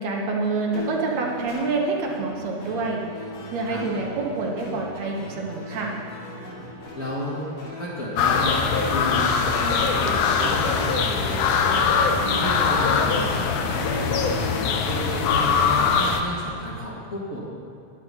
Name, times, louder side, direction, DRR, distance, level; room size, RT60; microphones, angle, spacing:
voice 1, 0.0-3.0 3.5-5.9, right 3 dB, 70° right, 0 dB, 2.3 m, -27 dB
sound 1, 0.7-16.0, equal, 55° left, 3.8 m, -37 dB
voice 2, 6.9-13.5 13.9-17.4, left 1 dB, 30° left, -7 dB, 1.8 m, -32 dB
sound 2, 8.2-16.2, left 5 dB, 90° left, 2.2 m, -22 dB
10.0 x 9.8 x 5.6 m, 2.5 s
omnidirectional pair, 3.3 m